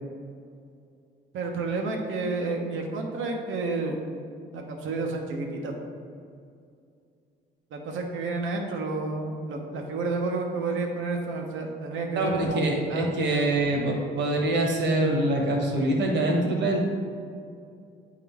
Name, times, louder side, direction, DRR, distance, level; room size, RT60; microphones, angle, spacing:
voice 1, 1.3-4.0 4.5-5.8 7.7-13.7, right 3 dB, 85° right, 2 dB, 0.9 m, -30 dB
voice 2, 12.1-16.9, right 1 dB, 65° right, 0 dB, 1.3 m, -24 dB
8.4 x 3.8 x 3.5 m, 2.4 s
cardioid pair, 90°, 20 cm